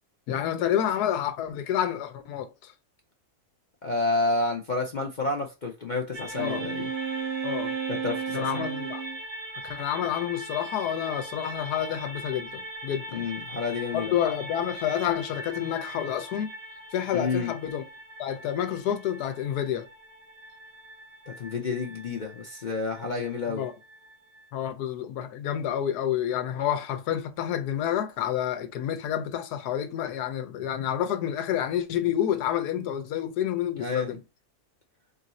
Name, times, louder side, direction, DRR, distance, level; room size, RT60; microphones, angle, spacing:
voice 1, 0.3-2.7 6.4-6.6 7.4-7.7 8.3-9.0 9.6-13.3 13.9-16.5 16.9-17.8 18.2-19.9 23.5-23.7 24.5-34.2, left 10 dB, 85° left, 1.2 m, -29 dB
voice 2, 3.8-6.9 7.9-8.6 13.1-14.1 17.1-17.5 21.3-23.6 33.8-34.2, left 3 dB, 55° left, 0.5 m, -30 dB
sound 1, 6.1-24.5, right 1 dB, 35° right, 0.7 m, -41 dB
Wind instrument woodwind instrument, 6.3-9.2, right 7 dB, 75° right, 0.5 m, -32 dB
3.8 x 2.5 x 4.1 m
omnidirectional pair, 1.6 m